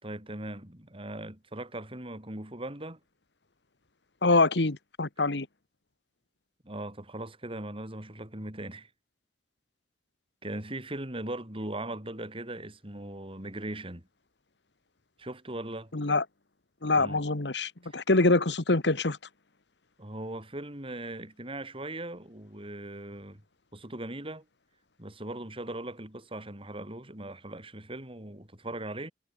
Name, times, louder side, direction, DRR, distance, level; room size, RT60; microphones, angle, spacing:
voice 1, 0.0-3.0 6.6-8.9 10.4-14.1 15.2-15.9 16.9-17.2 17.8-18.0 20.0-23.4 23.7-24.4 25.0-29.1, right 1 dB, 30° right, 5.1 m, -39 dB
voice 2, 4.2-5.5 15.9-16.2 16.8-19.2, left 3 dB, 70° left, 1.6 m, -25 dB
head